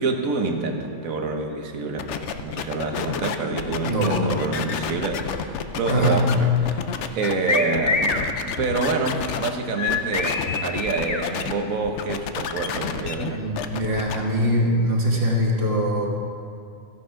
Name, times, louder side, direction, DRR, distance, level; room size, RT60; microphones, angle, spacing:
voice 1, 0.0-2.1 2.4-6.8 7.1-8.2 8.4-13.5, right 3 dB, 75° right, 4 dB, 1.4 m, -27 dB
sound 1, 2.0-9.5 9.9-11.5 11.8-14.2, left 7 dB, 65° left, 0.8 m, -30 dB
voice 2, 3.8-4.3 5.9-6.2 13.3-16.1, equal, 40° right, -1 dB, 1.7 m, -22 dB
sound 2, 7.5-8.2 9.8-11.2, left 4 dB, 30° left, 0.6 m, -25 dB
15.0 x 10.5 x 3.7 m, 2.4 s
omnidirectional pair, 1.5 m